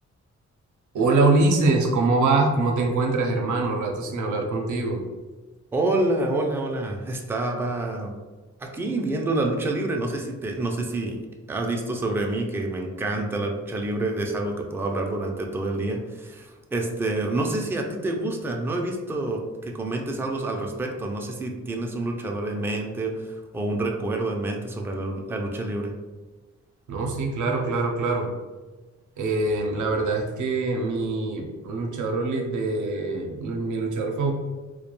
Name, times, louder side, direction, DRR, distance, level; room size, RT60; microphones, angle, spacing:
voice 1, 0.9-5.0 26.9-28.3 29.2-34.3, right 3 dB, 90° right, 1 dB, 0.5 m, -24 dB
voice 2, 5.7-8.1 8.6-11.2 11.5-25.9, right 2 dB, 10° right, 1 dB, 0.3 m, -28 dB
2.2 x 2.1 x 2.9 m, 1.2 s
cardioid pair, 85°, 29 cm